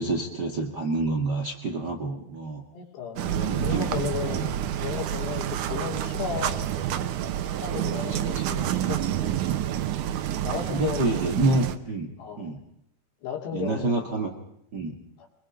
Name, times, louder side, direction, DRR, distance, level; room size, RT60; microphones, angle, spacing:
voice 1, 0.0-2.6 3.2-4.5 8.1-8.5 10.7-12.1 12.4-12.6 13.5-14.3 14.7-15.0, right 2 dB, 50° right, 2 dB, 1.2 m, -28 dB
voice 2, 2.7-3.3 3.6-4.5 4.8-6.7 7.5-9.3 10.4-11.3 12.2-12.5 13.2-14.1 15.2-15.3, left 7 dB, 75° left, 3 dB, 4.8 m, -34 dB
sound 1, 3.2-11.8, right 11 dB, 85° right, 1.8 m, -28 dB
23.5 x 22.0 x 5.3 m, 0.73 s
omnidirectional pair, 4.9 m